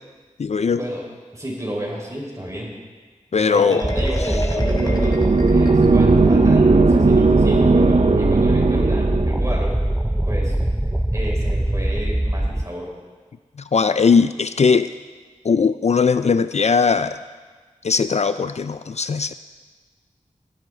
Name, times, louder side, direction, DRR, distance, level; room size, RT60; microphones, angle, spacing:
voice 1, 0.4-0.8 3.3-3.8 13.7-14.9 15.4-17.2 17.8-19.3, left 5 dB, 55° left, 12 dB, 0.4 m, -19 dB
voice 2, 1.3-2.8 3.4-9.7 10.3-10.6 11.1-12.9, equal, 25° right, -3 dB, 4.9 m, -31 dB
Marimba xylophone, 3.5-6.3, left 1 dB, 30° left, 1.7 m, -31 dB
sound 1, 3.8-12.6, right 1 dB, 10° right, 0.5 m, -22 dB
sound 2, 4.6-9.5, right 3 dB, 55° right, 0.7 m, -17 dB
18.5 x 11.5 x 4.0 m, 1.4 s
wide cardioid pair, 55°, 13 cm